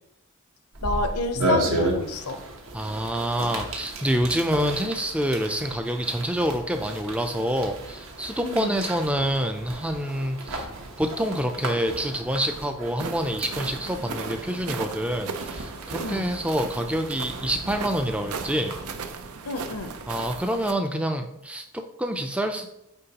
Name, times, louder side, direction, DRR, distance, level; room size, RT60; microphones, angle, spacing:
sound 1, 0.7-19.1, right 1 dB, 60° right, 1.0 m, -34 dB
voice 1, 0.8-2.4 8.4-8.8 16.0-16.3 19.4-20.0, left 2 dB, 85° left, 7 dB, 0.7 m, -30 dB
voice 2, 2.7-10.7 11.0-18.8 20.1-22.7, equal, 5° right, 6 dB, 0.4 m, -27 dB
sound 2, 13.0-20.7, right 5 dB, 80° right, 0.6 m, -36 dB
8.9 x 3.9 x 2.9 m, 0.84 s
head